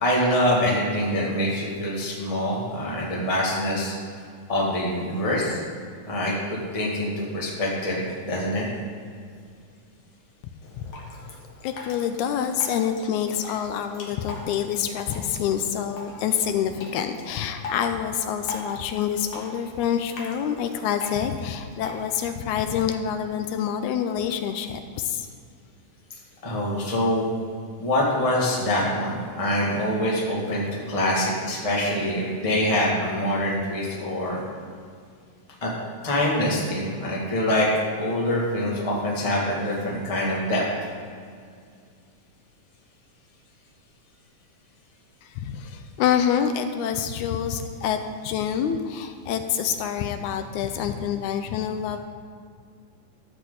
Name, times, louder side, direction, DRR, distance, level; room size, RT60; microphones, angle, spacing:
voice 1, 0.0-3.9 4.5-5.6 6.1-8.6 26.4-27.3 27.8-34.4 35.6-35.7 36.0-37.7 38.0-40.9, left 1 dB, 15° left, -4 dB, 1.4 m, -25 dB
Drip, 10.6-22.6, left 3 dB, 55° left, 2.3 m, -41 dB
voice 2, 10.8-25.3 45.2-52.0, left 8 dB, 80° left, 7 dB, 1.8 m, -27 dB
13.5 x 7.8 x 3.9 m, 2.2 s
omnidirectional pair, 3.7 m